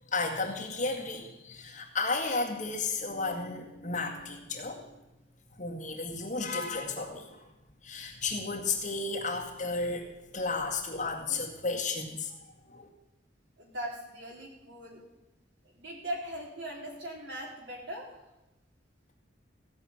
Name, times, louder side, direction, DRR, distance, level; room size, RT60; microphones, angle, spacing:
voice 1, 0.1-5.0 5.6-7.5 7.8-10.1 10.3-12.3 12.7-12.9, left 3 dB, 40° left, 0 dB, 2.0 m, -33 dB
voice 2, 13.6-15.0 15.8-18.1, right 1 dB, 70° right, -2 dB, 3.9 m, -39 dB
16.0 x 6.2 x 8.7 m, 0.97 s
head